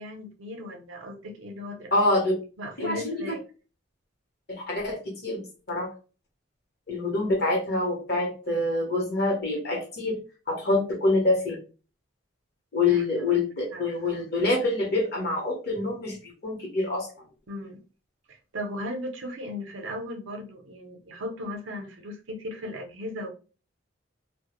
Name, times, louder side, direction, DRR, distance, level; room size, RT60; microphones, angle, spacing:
voice 1, 0.0-1.9 2.6-3.4 10.6-10.9 12.9-13.0 13.7-13.8 17.5-17.8 18.3-23.3, left 1 dB, 75° right, 0.6 m, -37 dB
voice 2, 1.9-2.3 2.8-3.2 4.5-5.4 5.7-5.9 6.9-10.2 10.5-11.6 12.7-17.1, left 2 dB, 50° left, 0.9 m, -26 dB
2.1 x 2.0 x 2.9 m
head